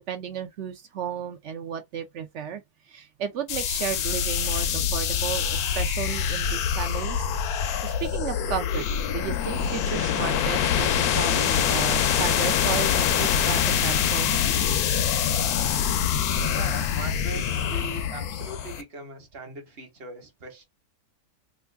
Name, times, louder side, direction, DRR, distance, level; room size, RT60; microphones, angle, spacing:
voice 1, 0.1-7.3 7.8-14.6, right 8 dB, 65° right, 0.7 m, -33 dB
sound 1, 3.5-18.8, left 8 dB, 80° left, 1.1 m, -25 dB
voice 2, 16.4-20.6, right 2 dB, 45° right, 1.2 m, -40 dB
3.1 x 2.5 x 3.3 m
omnidirectional pair, 1.6 m